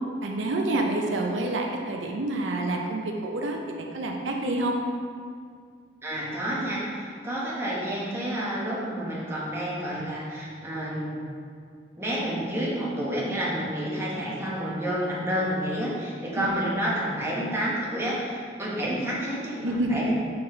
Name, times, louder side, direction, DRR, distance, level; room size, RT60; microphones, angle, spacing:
voice 1, 0.2-4.8 16.4-16.5 19.6-20.0, right 2 dB, 90° right, 1 dB, 0.6 m, -28 dB
voice 2, 6.0-11.2 12.0-20.2, equal, 15° right, -7 dB, 1.2 m, -29 dB
5.4 x 4.3 x 4.4 m, 2.2 s
head